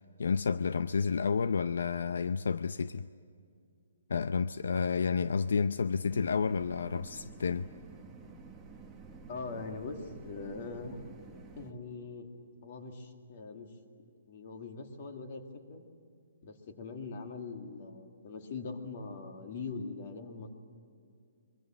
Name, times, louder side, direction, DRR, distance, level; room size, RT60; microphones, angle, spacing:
voice 1, 0.0-3.1 4.1-7.7, left 5 dB, 70° left, 0.6 m, -30 dB
sound 1, 6.1-11.7, right 4 dB, 5° right, 1.1 m, -50 dB
voice 2, 9.3-11.0 11.6-12.3 12.6-13.7 14.3-15.4 15.7-15.8 16.4-20.5, left 4 dB, 35° left, 2.3 m, -42 dB
25.5 x 23.5 x 7.6 m
hypercardioid pair, 175°, 0 cm